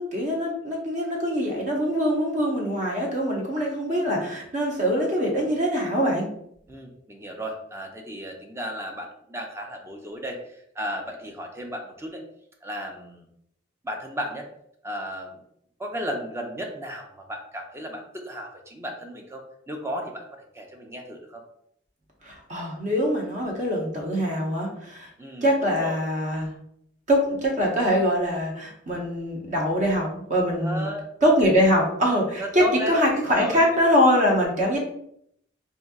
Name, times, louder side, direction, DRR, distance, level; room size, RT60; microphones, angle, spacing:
voice 1, 0.0-6.3 22.2-25.1 25.4-26.5 27.1-30.9 31.2-34.8, equal, 40° right, -1 dB, 0.9 m, -23 dB
voice 2, 6.7-12.2 12.6-13.2 13.8-14.5 14.8-15.4 15.8-21.4 25.2-26.0 30.6-31.1 32.4-33.8, equal, 15° right, 2 dB, 0.5 m, -34 dB
4.2 x 2.6 x 2.4 m, 0.72 s
head